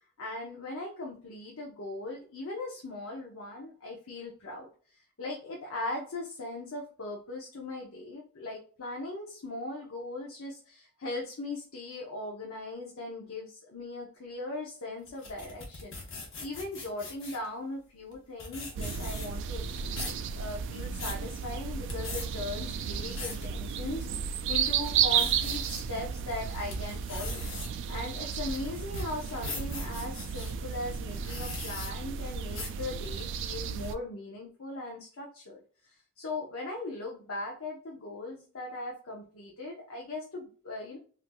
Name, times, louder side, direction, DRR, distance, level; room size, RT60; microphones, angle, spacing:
voice 1, 0.2-16.0 16.4-27.4 27.9-41.0, left 2 dB, 85° left, -2 dB, 0.8 m, -39 dB
sound 1, 15.1-17.5 18.1-18.2 18.4-19.4 19.8-20.2 20.7-21.2 21.8-22.3 22.8-23.4 23.9-24.0 24.5-25.8 26.3-30.5 31.1-31.9 32.5-32.8, left 3 dB, 65° left, 1.1 m, -40 dB
sound 2, 18.7-33.9, right 7 dB, 65° right, 0.3 m, -33 dB
4.3 x 2.7 x 2.2 m, 0.42 s
head